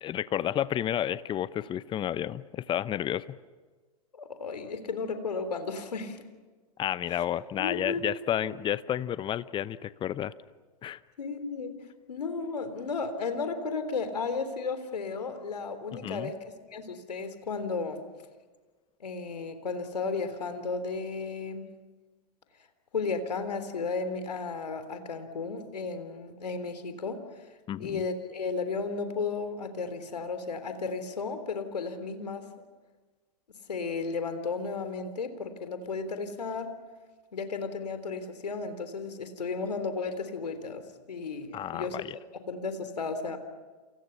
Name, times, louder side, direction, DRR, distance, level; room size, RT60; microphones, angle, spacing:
voice 1, 0.0-3.4 6.8-10.3 10.8-11.0 16.0-16.3 27.7-28.0 41.5-42.2, left 11 dB, 25° left, 17 dB, 0.9 m, -31 dB
voice 2, 4.1-6.2 7.1-7.2 7.6-8.0 8.4-8.5 11.2-11.8 12.1-18.1 19.0-21.7 22.9-27.5 27.8-32.5 33.7-36.8 37.3-42.0 42.5-43.4, left 4 dB, 80° left, 9 dB, 3.4 m, -34 dB
28.5 x 28.5 x 5.8 m, 1.4 s
hypercardioid pair, 105°, 20 cm